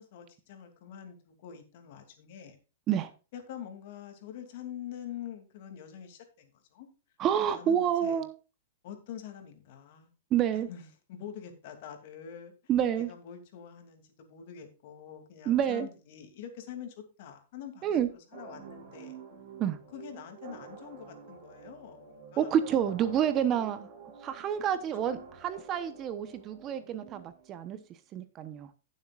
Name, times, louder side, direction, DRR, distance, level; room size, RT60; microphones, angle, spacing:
voice 1, 0.0-2.6 3.3-6.9 7.4-8.2 8.8-10.1 10.5-12.5 13.0-19.2 19.9-22.5, left 9 dB, 50° left, 2.6 m, -45 dB
voice 2, 7.2-8.3 10.3-10.7 12.7-13.1 15.5-15.9 17.8-18.1 19.6-19.8 22.4-23.9 24.2-27.8 28.1-28.7, right 9 dB, 25° right, 0.9 m, -28 dB
sound 1, 18.3-27.8, right 6 dB, 50° right, 4.0 m, -49 dB
16.0 x 7.4 x 2.4 m
hypercardioid pair, 150°, 0 cm